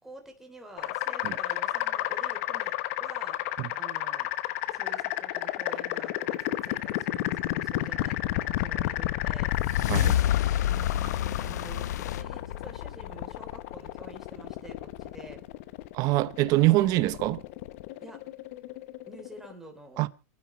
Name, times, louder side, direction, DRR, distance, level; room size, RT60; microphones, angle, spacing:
voice 1, 0.0-2.7 3.0-4.3 4.7-9.5 10.7-10.9 11.4-15.5 16.5-16.9 18.0-18.2 19.1-20.0, right 2 dB, 5° right, 3.5 m, -48 dB
sound 1, 0.8-19.5, left 16 dB, 60° left, 1.0 m, -32 dB
sound 2, 9.3-13.7, left 11 dB, 90° left, 0.6 m, -29 dB
voice 2, 15.9-17.4 20.0-20.1, right 19 dB, 45° right, 0.9 m, -24 dB
28.0 x 9.6 x 3.1 m
supercardioid pair, 135°, 9 cm